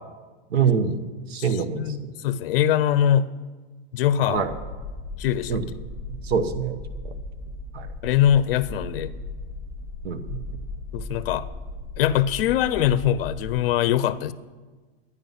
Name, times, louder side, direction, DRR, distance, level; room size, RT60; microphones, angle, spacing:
voice 1, 0.5-1.0 1.3-2.1 4.3-4.5 5.5-5.6 6.1-6.8 7.7-7.9 10.0-10.4, right 6 dB, 90° right, 9 dB, 1.1 m, -25 dB
voice 2, 1.4-3.3 3.9-4.4 5.2-5.6 8.0-9.2 10.9-11.5 12.0-14.3, left 10 dB, 65° left, 15 dB, 0.5 m, -22 dB
sound 1, 4.3-13.5, left 2 dB, ahead, 2.5 m, -36 dB
11.0 x 9.6 x 5.5 m, 1.3 s
supercardioid pair, 175°, 30 cm